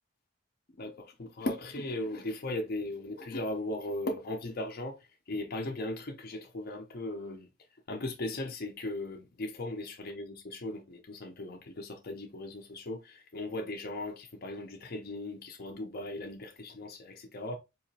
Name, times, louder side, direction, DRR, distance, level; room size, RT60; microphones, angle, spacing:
voice 1, 0.8-7.5 7.9-17.6, left 1 dB, 55° left, 0.6 m, -37 dB
4.1 x 2.9 x 2.7 m
head